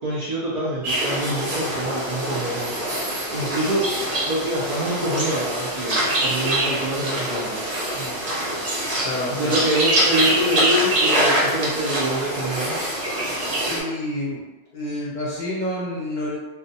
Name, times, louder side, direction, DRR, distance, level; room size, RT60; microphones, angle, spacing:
voice 1, 0.0-2.8 3.1-3.8 4.2-7.6 9.3-12.8, right 1 dB, 80° right, -7 dB, 0.3 m, -26 dB
sound 1, 0.8-13.8, right 1 dB, 50° right, 0.9 m, -24 dB
voice 2, 9.0-9.7 13.7-14.4 14.7-16.4, left 1 dB, 45° left, -7 dB, 0.7 m, -28 dB
2.3 x 2.1 x 2.7 m, 1.2 s
omnidirectional pair, 1.3 m